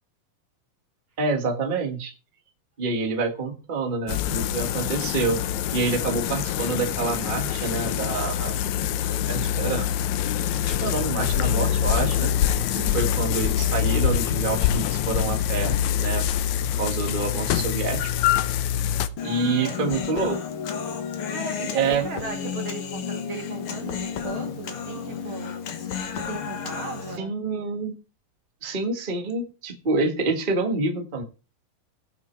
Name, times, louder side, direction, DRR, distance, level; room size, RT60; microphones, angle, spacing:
voice 1, 1.2-2.1 2.8-5.4 5.7-8.5 9.2-9.9 10.6-16.2 16.6-18.1 19.2-20.4 21.6-22.0 27.2-27.9 28.6-31.2, right 4 dB, 75° right, 4 dB, 0.4 m, -27 dB
sound 1, 4.1-19.1, left 10 dB, 75° left, 1.7 m, -25 dB
voice 2, 12.7-13.1 19.4-19.8 21.2-25.6 26.0-27.3, right 5 dB, 60° right, 5 dB, 1.4 m, -37 dB
Human voice, 19.2-27.2, left 7 dB, 55° left, 1.6 m, -32 dB
17.0 x 6.1 x 4.5 m, 0.32 s
omnidirectional pair, 3.9 m